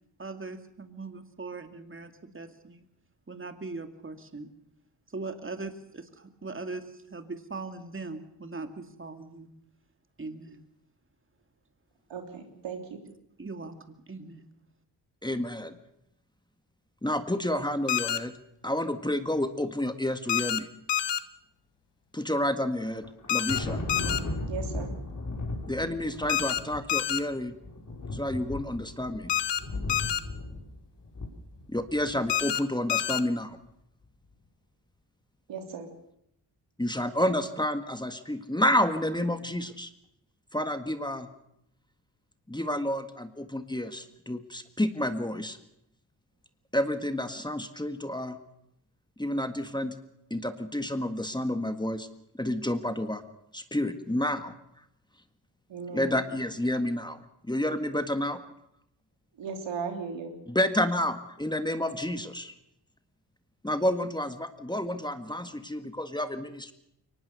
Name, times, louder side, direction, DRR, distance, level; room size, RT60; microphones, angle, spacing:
voice 1, 0.2-2.9 3.3-4.5 5.1-9.5 10.2-10.6 13.0-13.1 13.4-14.4, right 3 dB, 30° right, 7 dB, 2.4 m, -40 dB
voice 2, 12.1-13.0 24.5-24.9 35.5-35.9 55.7-56.2 59.4-60.3, right 5 dB, 85° right, 4 dB, 3.5 m, -36 dB
voice 3, 15.2-15.8 17.0-18.3 18.6-20.7 22.1-23.0 23.3-23.8 25.7-27.5 28.1-29.3 31.7-33.6 36.8-39.9 40.5-41.3 42.5-45.6 46.7-48.4 49.2-49.9 50.3-52.1 52.4-53.2 53.5-54.5 55.9-57.2 57.5-58.4 60.5-62.5 63.6-66.7, left 1 dB, 10° left, 8 dB, 1.8 m, -29 dB
sound 1, 17.9-18.2 20.3-20.6 20.9-21.2 23.3-23.6 23.9-24.2 26.3-26.6 26.9-27.2 29.3-29.6 29.9-30.2 32.3-32.6 32.9-33.2, left 11 dB, 70° left, 1.2 m, -27 dB
Thunder, 22.9-32.3, left 2 dB, 40° left, 5.2 m, -36 dB
23.0 x 19.5 x 6.9 m, 0.76 s
cardioid pair, 60°, 44 cm